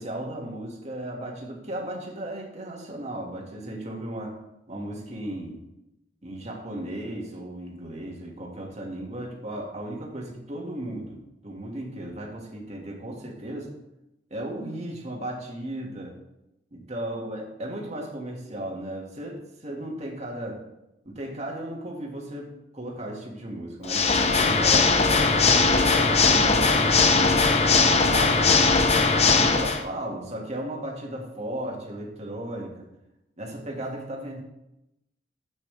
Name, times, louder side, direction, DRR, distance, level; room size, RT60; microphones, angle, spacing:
voice 1, 0.0-4.4 4.7-5.6 6.2-13.7 14.3-16.2 16.7-20.6 21.0-28.9 29.4-32.8 33.4-34.4, right 1 dB, 40° right, -1 dB, 2.2 m, -35 dB
Water / Mechanisms, 23.8-29.8, left 4 dB, 40° left, 0.8 m, -20 dB
12.0 x 8.8 x 3.5 m, 0.90 s
head